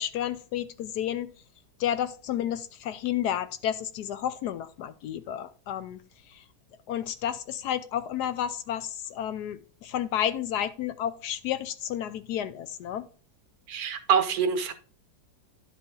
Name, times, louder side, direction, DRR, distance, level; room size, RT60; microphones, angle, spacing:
voice 1, 0.0-1.3 1.8-6.0 6.3-6.4 6.9-13.1, left 10 dB, 75° left, 1.0 m, -31 dB
voice 2, 13.7-14.7, right 7 dB, 65° right, 1.2 m, -25 dB
11.5 x 5.0 x 3.8 m
omnidirectional pair, 1.9 m